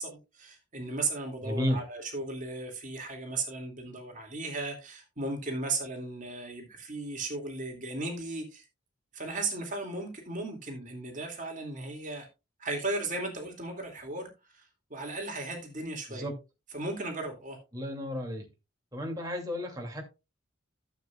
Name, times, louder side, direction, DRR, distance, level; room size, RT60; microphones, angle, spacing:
voice 1, 0.0-8.6 9.1-12.3 12.6-16.3 16.7-17.6, right 2 dB, 40° right, 2.4 m, -36 dB
voice 2, 1.4-1.8 16.1-16.3 17.7-18.5 18.9-20.0, equal, 15° right, 2.5 m, -32 dB
14.0 x 7.9 x 2.3 m
head